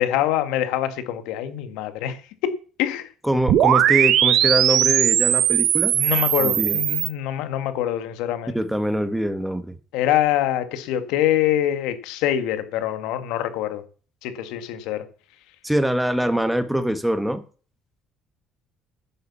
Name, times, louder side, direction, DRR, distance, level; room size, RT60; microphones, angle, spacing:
voice 1, 0.0-2.5 2.8-3.1 5.9-8.6 9.9-13.8 14.2-15.1, left 12 dB, 85° left, 1.8 m, -24 dB
voice 2, 3.2-5.9 6.4-6.8 8.5-9.8 15.6-17.4, right 1 dB, 5° right, 2.0 m, -23 dB
sound 1, 3.5-7.1, right 11 dB, 70° right, 1.4 m, -19 dB
10.5 x 8.2 x 7.2 m
supercardioid pair, 85°, 0 cm